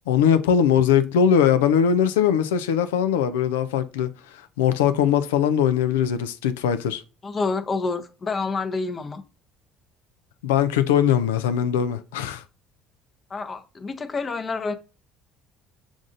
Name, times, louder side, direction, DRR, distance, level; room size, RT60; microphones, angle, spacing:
voice 1, 0.1-4.1 4.6-7.0 10.4-12.4, left 8 dB, 90° left, 0.4 m, -20 dB
voice 2, 7.2-9.2 13.3-14.7, left 4 dB, 35° left, 0.8 m, -28 dB
7.1 x 2.6 x 2.5 m
hypercardioid pair, 65°, 0 cm